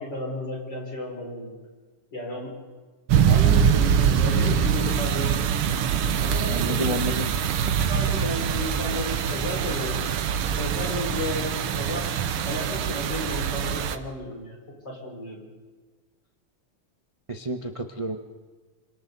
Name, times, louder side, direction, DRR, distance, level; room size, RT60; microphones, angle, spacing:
voice 1, 0.0-1.5 2.1-2.5 3.3-5.4 6.2-7.1 7.9-10.0 10.6-11.5 11.8-14.6 14.8-15.4, left 1 dB, 50° left, -1 dB, 5.9 m, -33 dB
sound 1, 3.1-14.0, right 8 dB, 90° right, 1.9 m, -24 dB
voice 2, 6.5-7.3 17.3-18.2, right 1 dB, 35° right, 4 dB, 0.5 m, -29 dB
26.5 x 26.5 x 4.1 m, 1.4 s
omnidirectional pair, 2.4 m